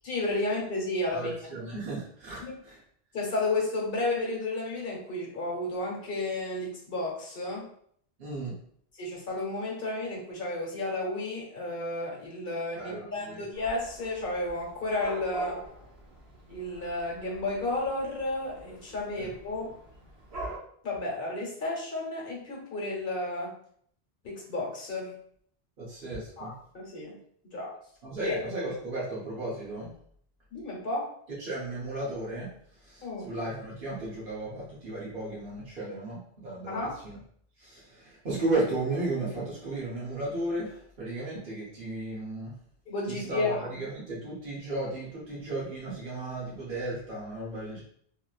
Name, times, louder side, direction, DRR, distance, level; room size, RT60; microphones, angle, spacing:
voice 1, 0.0-1.3 2.4-2.6 3.1-7.7 9.0-15.6 16.5-19.7 20.8-23.5 24.2-25.2 26.4-27.2 27.4-27.7 28.2-28.3 30.5-31.1 33.0-33.3 36.7-36.9 42.9-43.7, left 2 dB, 60° left, -2 dB, 1.1 m, -32 dB
voice 2, 1.1-2.8 8.2-8.5 12.7-13.5 19.2-19.3 25.8-26.5 28.0-29.9 31.4-32.5 32.8-37.2 37.6-42.6 43.1-47.8, right 2 dB, 60° right, -7 dB, 1.0 m, -34 dB
Dog / Cat, 13.5-20.6, right 2 dB, 85° right, 1.1 m, -45 dB
3.0 x 2.8 x 2.3 m, 0.63 s
omnidirectional pair, 1.0 m